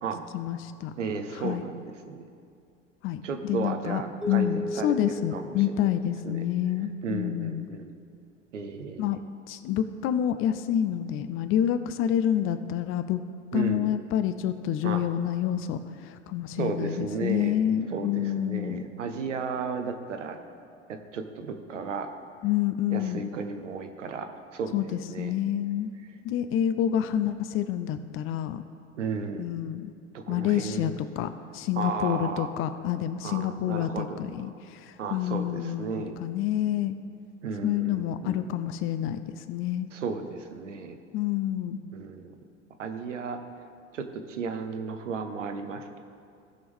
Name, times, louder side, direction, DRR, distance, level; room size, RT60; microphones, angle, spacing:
voice 1, 0.3-0.9 1.4-1.6 3.0-3.2 3.5-4.0 4.3-7.7 9.0-9.2 9.5-13.2 13.5-18.8 22.4-23.3 24.7-25.9 26.2-28.6 29.4-29.9 30.3-30.9 31.2-36.9 37.6-39.9 41.1-41.8, left 11 dB, 35° left, 11 dB, 0.5 m, -28 dB
voice 2, 1.0-2.2 3.2-5.8 6.2-6.5 6.8-7.9 8.5-9.2 13.5-13.9 14.8-15.0 16.6-17.6 17.9-20.4 20.9-22.1 22.9-25.3 29.0-29.5 30.1-31.0 31.7-32.5 33.2-34.5 35.0-36.2 37.4-38.4 39.9-41.0 41.9-42.3 42.8-43.4 43.9-46.0, right 5 dB, 75° right, 7 dB, 1.0 m, -34 dB
sound 1, 4.2-6.8, left 1 dB, ahead, 0.9 m, -36 dB
17.0 x 6.1 x 3.6 m, 2.4 s
figure-of-eight pair, 75°, 37 cm